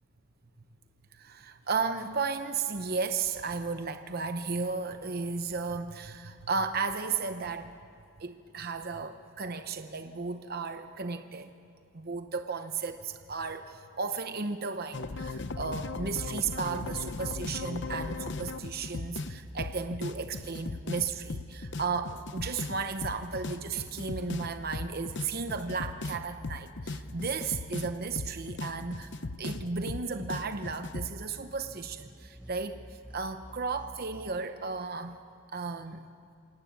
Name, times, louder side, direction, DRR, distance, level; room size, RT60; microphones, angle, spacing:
voice 1, 1.1-7.7 8.2-11.5 11.9-29.1 29.4-35.2 35.5-36.1, right 4 dB, 45° right, 8 dB, 0.8 m, -34 dB
sound 1, 14.9-31.1, left 3 dB, 55° left, 0.8 m, -37 dB
sound 2, 18.7-34.4, equal, 5° right, 0.9 m, -50 dB
27.5 x 17.5 x 8.9 m, 2.4 s
head